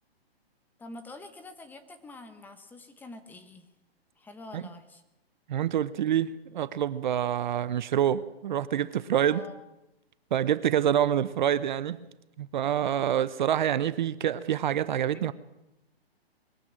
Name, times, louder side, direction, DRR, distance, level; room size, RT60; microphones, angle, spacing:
voice 1, 0.8-3.7 4.2-5.0 9.3-9.6 15.1-15.3, left 2 dB, 5° left, 8 dB, 1.1 m, -46 dB
voice 2, 5.5-9.4 10.3-12.0 12.4-15.3, right 10 dB, 45° right, 16 dB, 0.8 m, -26 dB
22.0 x 15.5 x 8.8 m, 0.92 s
hypercardioid pair, 155°, 32 cm